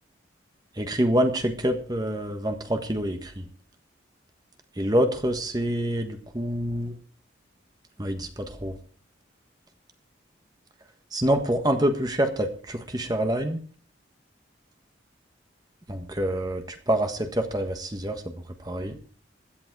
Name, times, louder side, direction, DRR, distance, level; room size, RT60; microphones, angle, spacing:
voice 1, 0.8-3.4 4.8-6.9 8.0-8.7 11.1-13.6 15.9-18.3 18.6-19.0, equal, 20° right, 6 dB, 1.4 m, -26 dB
16.0 x 11.5 x 4.8 m, 0.41 s
head